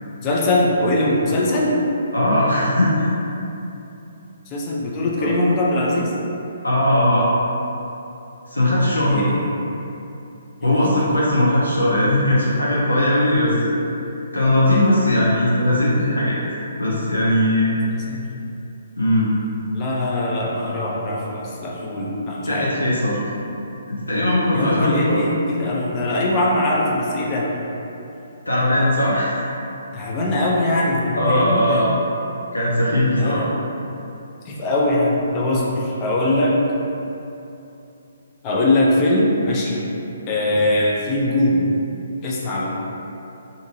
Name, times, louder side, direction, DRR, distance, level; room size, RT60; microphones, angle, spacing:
voice 1, 0.2-1.7 4.5-6.1 8.9-9.6 10.6-11.2 17.9-18.3 19.7-22.7 24.5-27.5 29.9-31.9 33.2-33.5 34.5-36.6 38.4-39.8 40.3-41.7 42.2-42.8, left 1 dB, 25° left, -4 dB, 0.4 m, -21 dB
voice 2, 2.1-3.1 5.2-5.3 6.6-7.3 8.5-9.3 10.6-13.7 14.3-16.4 16.8-17.7 19.0-19.4 22.5-23.2 23.9-25.2 28.5-29.4 31.2-31.9 32.5-33.4, left 1 dB, 85° left, -7 dB, 0.5 m, -19 dB
2.6 x 2.5 x 2.7 m, 2.9 s
figure-of-eight pair, 135°, 0 cm